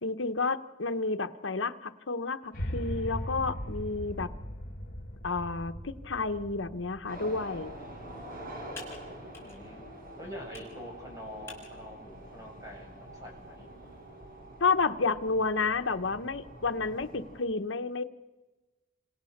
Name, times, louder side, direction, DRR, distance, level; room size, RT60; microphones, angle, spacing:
voice 1, 0.0-4.3 5.2-7.7 14.6-18.0, left 4 dB, 75° left, 9 dB, 1.1 m, -30 dB
sound 1, 2.5-8.7, equal, 50° left, 2.2 m, -39 dB
sound 2, 7.1-17.4, right 1 dB, 50° right, 5.3 m, -46 dB
Computer keyboard, 7.3-14.1, left 4 dB, 15° left, 6.4 m, -54 dB
voice 2, 9.4-9.8 10.2-13.7, equal, 20° right, 0 dB, 7.9 m, -45 dB
30.0 x 26.5 x 6.6 m, 1.2 s
head